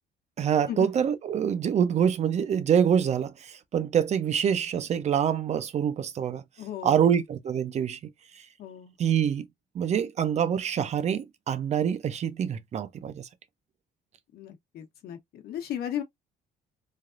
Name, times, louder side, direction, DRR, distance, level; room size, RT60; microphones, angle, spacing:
voice 1, 0.4-6.4 6.8-8.0 9.0-9.5 9.7-13.3, right 8 dB, 40° right, 0.5 m, -25 dB
voice 2, 6.6-7.2 8.6-9.0 14.3-16.0, left 10 dB, 70° left, 1.0 m, -36 dB
3.3 x 2.3 x 2.4 m
cardioid pair, 110°, 17 cm